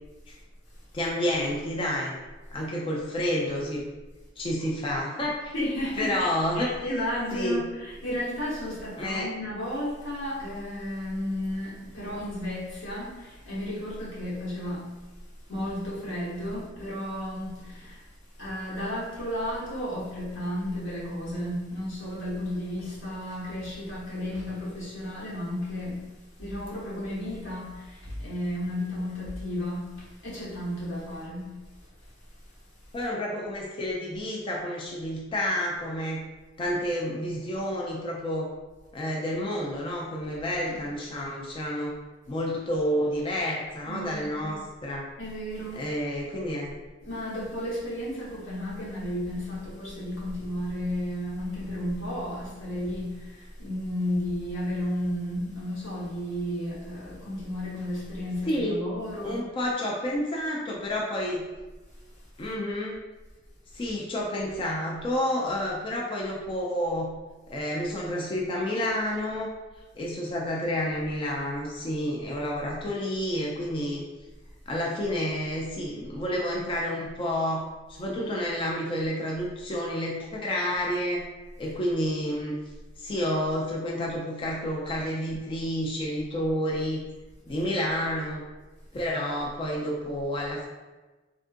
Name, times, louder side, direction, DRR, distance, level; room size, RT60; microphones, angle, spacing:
voice 1, 0.9-2.1 2.5-3.8 4.4-5.5 6.0-6.7 7.3-7.6 9.0-9.3 32.9-36.2 36.6-38.5 38.9-42.0 42.3-45.1 45.7-46.7 58.5-58.8 59.2-61.4 62.4-63.0 63.7-67.1 67.5-69.5 69.9-74.0 74.7-77.6 77.9-81.2 81.6-82.6 83.0-87.0 87.5-88.4 88.9-90.7, equal, 30° left, 0.3 m, -29 dB
voice 2, 5.5-6.3 6.5-14.9 15.5-18.0 18.4-26.1 26.4-31.6 40.6-40.8 43.8-44.5 45.2-45.9 47.0-59.4, left 1 dB, 85° left, 1.1 m, -33 dB
3.5 x 2.4 x 2.5 m
head